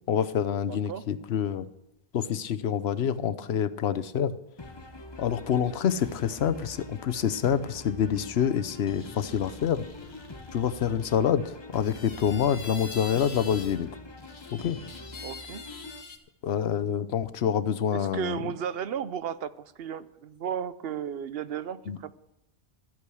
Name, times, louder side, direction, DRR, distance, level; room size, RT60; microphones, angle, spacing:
voice 1, 0.1-1.7 2.1-4.3 5.2-9.8 10.5-13.9 14.5-14.8 16.4-18.5 21.9-22.0, left 8 dB, 85° left, 13 dB, 1.0 m, -27 dB
voice 2, 0.7-1.0 15.2-15.6 17.9-22.2, right 8 dB, 75° right, 15 dB, 0.9 m, -34 dB
sound 1, 4.6-16.0, left 2 dB, 25° left, 0.9 m, -44 dB
sound 2, 8.9-11.2 11.8-13.8 14.2-16.2, left 4 dB, 50° left, 1.4 m, -45 dB
13.5 x 8.5 x 6.2 m, 0.88 s
omnidirectional pair, 1.0 m